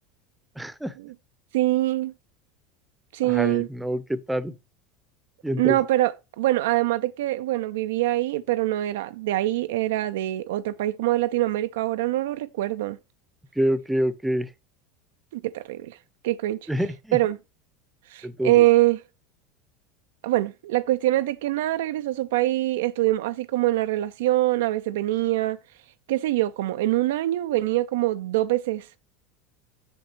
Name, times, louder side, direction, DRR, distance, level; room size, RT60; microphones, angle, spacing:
voice 1, 0.6-0.9 3.2-4.5 5.4-5.8 13.6-14.5 16.7-17.2 18.2-18.6, equal, 5° right, 0.7 m, -26 dB
voice 2, 1.5-2.1 3.1-3.7 5.6-13.0 15.3-16.0 16.2-16.7 17.1-17.4 18.1-19.0 20.2-25.6 26.1-29.0, right 16 dB, 70° right, 0.4 m, -24 dB
7.8 x 7.1 x 3.0 m
figure-of-eight pair, 75°, 0 cm